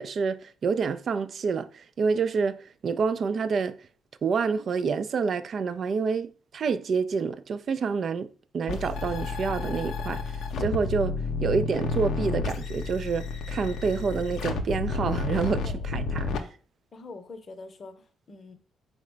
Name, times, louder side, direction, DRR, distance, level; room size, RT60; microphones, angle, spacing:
voice 1, 0.0-3.8 4.2-10.2 10.6-16.3, right 5 dB, 55° right, 0.3 m, -28 dB
sound 1, 8.7-16.4, left 4 dB, 80° left, 0.5 m, -31 dB
voice 2, 15.6-15.9 16.9-18.5, left 3 dB, 40° left, 0.7 m, -44 dB
3.8 x 2.1 x 4.4 m
cardioid pair, 90°, 0 cm